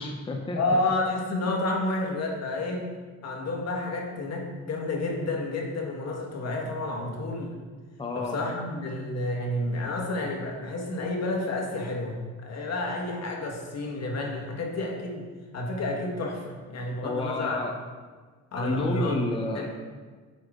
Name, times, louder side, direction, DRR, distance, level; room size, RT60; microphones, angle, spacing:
voice 1, 0.0-0.8 8.0-8.4 17.0-17.7 18.5-19.7, left 2 dB, 15° left, 2 dB, 0.7 m, -30 dB
voice 2, 0.5-2.9 3.2-7.5 8.1-15.3 15.5-17.6 18.5-19.2 19.5-19.7, left 2 dB, 55° left, 0 dB, 1.5 m, -30 dB
7.3 x 5.5 x 3.7 m, 1.4 s
cardioid pair, 90°, 30 cm